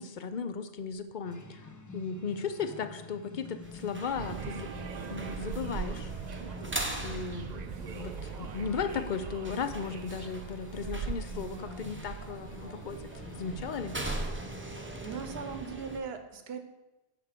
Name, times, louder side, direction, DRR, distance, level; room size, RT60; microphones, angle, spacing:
voice 1, 0.0-1.6 1.9-4.7 5.1-6.1 7.0-7.6 7.9-13.0 13.3-14.0, left 5 dB, 55° left, 11 dB, 0.7 m, -36 dB
sound 1, 1.2-15.6, left 2 dB, 20° left, 0.6 m, -48 dB
sound 2, 3.6-16.0, right 1 dB, 15° right, 0.8 m, -42 dB
sound 3, 4.1-15.7, right 6 dB, 50° right, 0.6 m, -41 dB
voice 2, 11.3-11.8 15.0-16.6, right 5 dB, 75° right, 8 dB, 1.1 m, -40 dB
9.2 x 4.7 x 6.6 m, 1.0 s
omnidirectional pair, 1.1 m